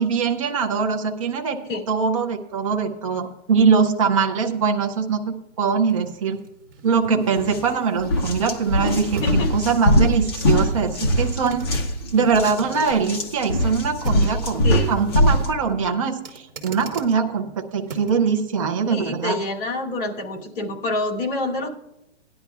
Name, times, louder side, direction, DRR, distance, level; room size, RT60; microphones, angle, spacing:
voice 1, 0.0-1.6 1.9-6.4 6.8-9.2 9.5-11.7 12.1-19.4, right 5 dB, 30° right, 3 dB, 0.6 m, -22 dB
sound 1, 3.8-18.3 18.8-18.9, right 4 dB, 50° right, 2.0 m, -41 dB
sound 2, 7.4-7.6 8.0-15.5, equal, 20° left, 0.8 m, -22 dB
voice 2, 18.9-21.7, left 2 dB, 45° left, -2 dB, 2.6 m, -27 dB
18.5 x 10.5 x 2.4 m, 0.92 s
hypercardioid pair, 170°, 36 cm